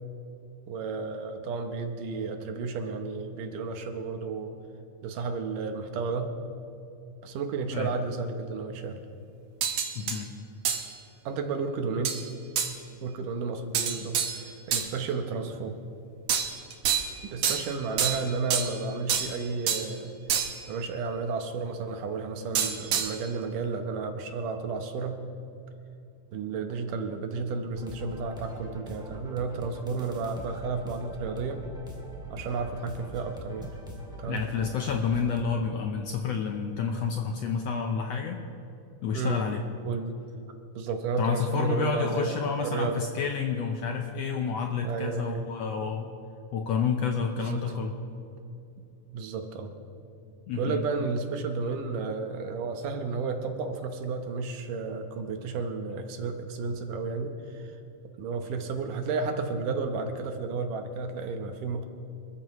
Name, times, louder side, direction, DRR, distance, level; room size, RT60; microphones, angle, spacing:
voice 1, 0.7-4.6 5.0-6.3 7.2-9.0 11.3-12.2 13.0-15.8 16.9-17.0 17.2-20.1 20.7-25.2 26.3-31.6 32.3-33.7 34.2-34.4 39.1-39.5 39.9-40.2 40.8-43.0 44.8-45.4 47.3-47.8 49.1-49.7 50.6-57.8 58.2-61.8, right 4 dB, 80° right, 5 dB, 2.6 m, -32 dB
sound 1, 9.6-10.2 10.6-10.9 12.0-12.2 12.6-12.7 13.7-14.9 16.3-17.2 17.4-18.8 19.1-19.9 20.3-20.7 22.5-23.2, right 8 dB, 65° right, 2.1 m, -28 dB
voice 2, 9.9-10.3 34.3-38.4 39.0-39.6 41.2-46.1 46.5-47.9 50.5-50.8, left 6 dB, 75° left, 3 dB, 1.6 m, -29 dB
sound 2, 27.7-35.4, right 1 dB, ahead, 1.2 m, -43 dB
26.0 x 13.5 x 3.1 m, 2.7 s
omnidirectional pair, 3.7 m